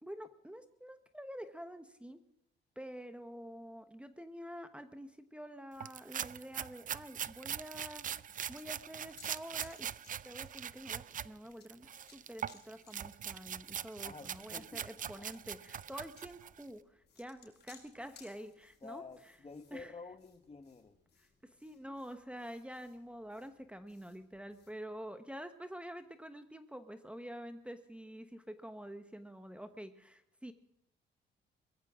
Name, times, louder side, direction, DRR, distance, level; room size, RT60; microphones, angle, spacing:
voice 1, 0.0-2.2 2.7-9.9 10.2-19.0 19.7-19.9 21.2-21.3 21.6-30.5, equal, 5° right, 9 dB, 1.2 m, -48 dB
sound 1, 5.8-11.3 11.7-16.6, right 9 dB, 40° right, 0.5 m, -42 dB
sound 2, 7.6-24.7, left 6 dB, 55° left, 5.5 m, -65 dB
voice 2, 14.0-15.3 18.8-21.0, left 4 dB, 30° left, 10 dB, 1.4 m, -50 dB
21.5 x 15.0 x 3.7 m, 0.80 s
cardioid pair, 90°, 20 cm